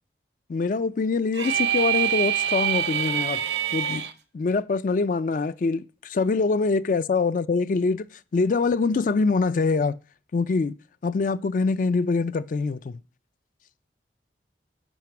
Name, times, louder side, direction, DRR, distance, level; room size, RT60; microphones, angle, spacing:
voice 1, 0.5-3.4 3.7-4.0 4.3-8.1 8.3-10.0 10.3-10.7 11.0-13.0, left 4 dB, 45° left, 0.4 m, -24 dB
sound 1, 1.3-4.1, right 10 dB, 65° right, 0.7 m, -25 dB
9.1 x 5.2 x 5.8 m
head